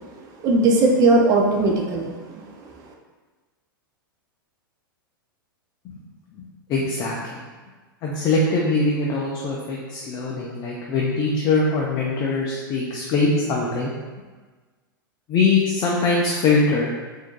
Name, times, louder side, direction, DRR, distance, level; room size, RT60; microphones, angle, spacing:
voice 1, 0.4-2.4, right 2 dB, 30° right, 1 dB, 0.4 m, -18 dB
voice 2, 6.4-7.4 8.0-13.9 15.3-16.9, left 3 dB, 35° left, -4 dB, 0.5 m, -22 dB
4.4 x 2.6 x 2.2 m, 1.3 s
figure-of-eight pair, 95°, 12 cm